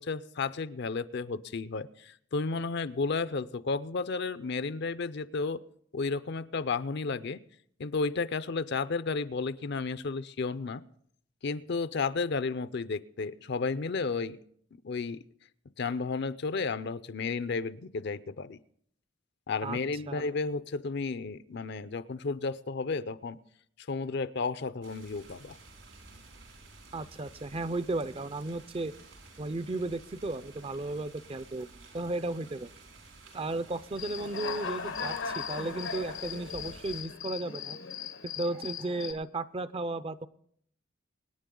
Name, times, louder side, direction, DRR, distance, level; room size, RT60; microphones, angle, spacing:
voice 1, 0.0-5.6 5.9-7.4 7.8-10.8 11.4-14.4 14.8-15.2 15.8-18.6 19.5-23.4 23.9-25.6, left 4 dB, 60° left, 15 dB, 0.5 m, -32 dB
sound 1, 24.8-37.0, right 3 dB, 80° right, 4.8 m, -53 dB
voice 2, 26.9-28.9 29.4-32.7 33.3-37.8 38.2-40.3, right 2 dB, 30° right, 15 dB, 0.5 m, -34 dB
Human voice / Cricket, 34.0-39.1, left 6 dB, 85° left, 1.2 m, -38 dB
24.5 x 9.9 x 3.8 m, 0.65 s
head